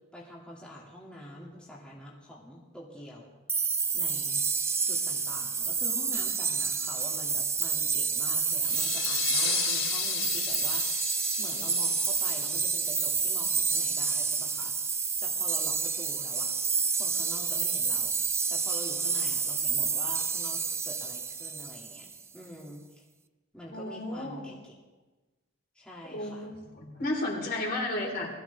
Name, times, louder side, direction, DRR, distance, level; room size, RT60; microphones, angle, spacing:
voice 1, 0.1-3.3 3.9-4.5 4.8-16.5 16.9-18.2 18.5-23.0 23.5-24.7 25.7-26.5, equal, 5° left, -5 dB, 2.5 m, -46 dB
sound 1, 3.5-22.2, right 5 dB, 15° right, 0.5 m, -29 dB
sound 2, 8.6-13.9, left 10 dB, 80° left, 1.4 m, -35 dB
voice 2, 23.7-24.5 26.1-28.3, left 1 dB, 50° left, -1 dB, 4.1 m, -33 dB
21.5 x 14.5 x 3.5 m, 1.2 s
head